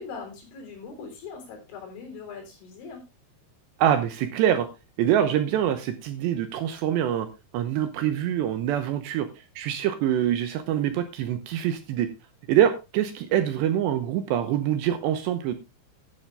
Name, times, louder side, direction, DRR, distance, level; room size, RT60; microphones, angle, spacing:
voice 1, 0.0-3.0, left 5 dB, 75° left, 3 dB, 6.1 m, -41 dB
voice 2, 3.8-4.7 5.0-7.3 7.5-12.1 12.5-15.5, right 10 dB, 75° right, 10 dB, 2.8 m, -25 dB
12.0 x 10.0 x 3.3 m, 0.26 s
omnidirectional pair, 5.7 m